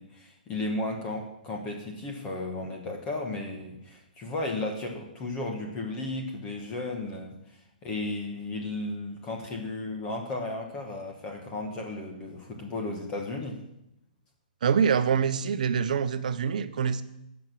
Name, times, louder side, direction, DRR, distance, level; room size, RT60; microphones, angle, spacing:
voice 1, 0.0-7.4 7.8-13.6, left 2 dB, 15° left, 2 dB, 1.1 m, -34 dB
voice 2, 14.6-17.0, right 7 dB, 55° right, 12 dB, 0.7 m, -25 dB
10.5 x 6.2 x 7.5 m, 0.82 s
hypercardioid pair, 170°, 5 cm